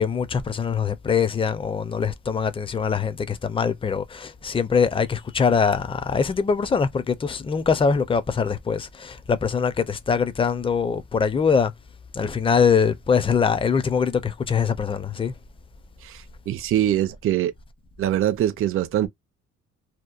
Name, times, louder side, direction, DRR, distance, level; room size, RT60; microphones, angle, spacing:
voice 1, 0.0-11.7 12.1-15.3, left 6 dB, 20° left, 0.4 m, -23 dB
voice 2, 16.0-17.5 18.0-19.1, right 12 dB, 45° right, 0.4 m, -23 dB
2.8 x 2.1 x 2.4 m
cardioid pair, 90°, 30 cm